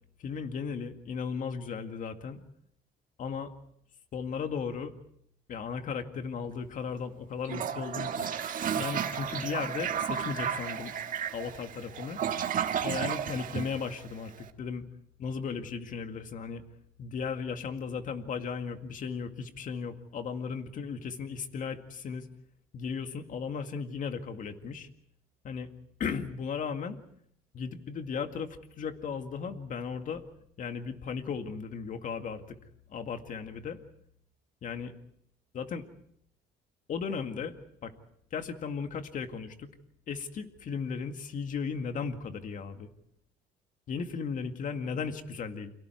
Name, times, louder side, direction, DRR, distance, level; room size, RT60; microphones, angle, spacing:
voice 1, 0.2-2.4 3.2-3.5 4.1-4.9 5.5-8.3 8.8-10.9 11.3-12.2 12.8-14.8 15.2-16.6 17.0-22.3 22.7-24.9 25.4-25.7 26.0-27.0 27.5-30.2 30.6-32.6 32.9-33.8 34.6-34.9 35.5-35.9 36.9-37.5 37.8-37.9 38.3-39.7 40.1-42.9 43.9-45.7, left 6 dB, 50° left, 7 dB, 2.1 m, -36 dB
Toilet flush, 7.4-14.4, right 8 dB, 55° right, 1.5 m, -33 dB
29.5 x 23.5 x 4.6 m, 0.69 s
cardioid pair, 110°, 17 cm